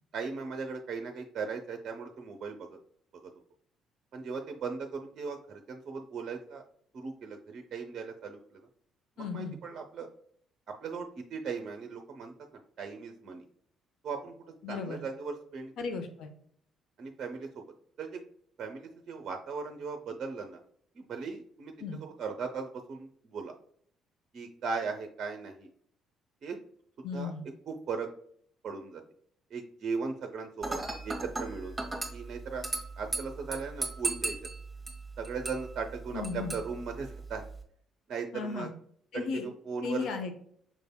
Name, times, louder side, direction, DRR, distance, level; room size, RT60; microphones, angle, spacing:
voice 1, 0.1-2.8 3.2-3.3 4.1-6.6 6.9-8.6 9.3-10.1 10.7-12.3 12.8-13.4 14.0-14.3 14.7-15.7 17.0-17.6 18.0-18.2 18.6-20.6 21.0-21.7 22.0-23.5 24.3-25.7 26.4-26.6 27.1-27.3 27.7-28.1 28.6-29.0 29.5-30.8 31.0-31.8 32.1-32.6 33.0-34.4 35.2-37.4 38.1-38.7 39.1-40.1, right 5 dB, 50° right, 4 dB, 0.5 m, -38 dB
voice 2, 9.2-9.6 14.6-15.0 15.8-16.3 21.8-22.0 27.0-27.5 36.1-36.5 38.3-38.7 39.1-39.5 39.8-40.3, left 5 dB, 65° left, 6 dB, 0.6 m, -35 dB
Dishes pots and pans / Glass, 30.6-37.6, right 2 dB, 15° right, 1.5 m, -38 dB
5.9 x 3.3 x 2.2 m, 0.64 s
hypercardioid pair, 50°, 0 cm